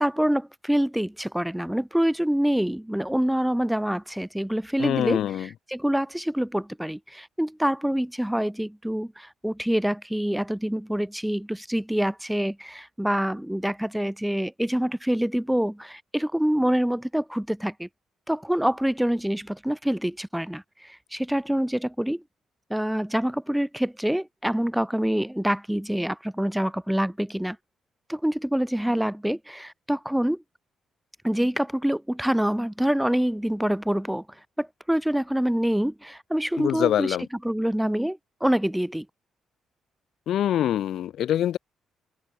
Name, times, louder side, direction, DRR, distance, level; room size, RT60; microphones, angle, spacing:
voice 1, 0.0-17.9 18.3-20.6 21.1-22.2 22.7-27.6 28.1-30.4 31.2-34.2 34.6-37.2 37.4-39.1, equal, 5° right, 2.0 m, -26 dB
voice 2, 4.8-5.5 36.6-37.3 40.3-41.6, left 11 dB, 75° left, 1.7 m, -24 dB
cardioid pair, 105°, 0 cm